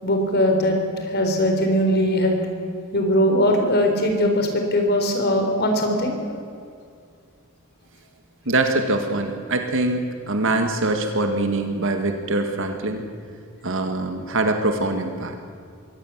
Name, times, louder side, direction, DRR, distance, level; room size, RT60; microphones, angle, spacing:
voice 1, 0.0-2.4 2.9-6.4, equal, 50° left, 4 dB, 4.1 m, -20 dB
voice 2, 8.5-13.1 13.6-15.4, right 2 dB, 60° right, 5 dB, 2.0 m, -23 dB
23.0 x 17.5 x 7.5 m, 2.3 s
head